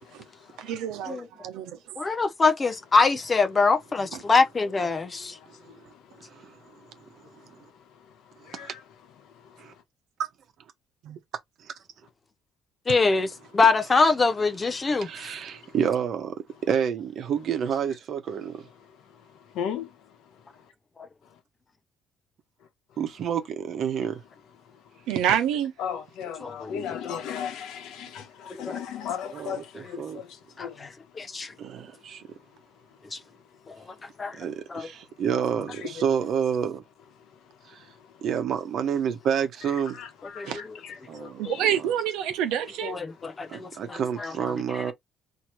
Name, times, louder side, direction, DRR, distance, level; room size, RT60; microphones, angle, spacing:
voice 1, 0.0-0.7 4.6-8.8 9.2-9.7 15.3-15.7 18.8-20.6 24.6-25.0 25.8-31.0 32.2-32.3 35.3-36.0 37.3-38.3 39.9-41.7 43.3-43.8, left 8 dB, 70° left, 1.0 m, -39 dB
voice 2, 0.6-2.0 11.0-11.2 25.1-25.7 40.5-40.6 41.4-43.0, right 9 dB, 80° right, 0.9 m, -27 dB
voice 3, 2.0-5.4 12.9-15.3 21.0-21.1 26.4-26.8 28.5-28.8 30.6-30.9 31.2-31.5 33.1-33.2 33.7-33.8 34.2-34.4 34.7-34.9 40.4-40.8 41.2-41.5 42.8-44.9, left 4 dB, 20° left, 0.6 m, -24 dB
voice 4, 15.0-16.3 16.6-18.7 23.0-24.2 29.3-30.2 31.6-32.3 34.3-36.8 37.7-37.9 38.2-40.0 41.1-41.5 41.8-41.9 43.5-44.9, right 8 dB, 50° right, 1.0 m, -29 dB
4.5 x 2.9 x 3.0 m
cardioid pair, 155°, 0 cm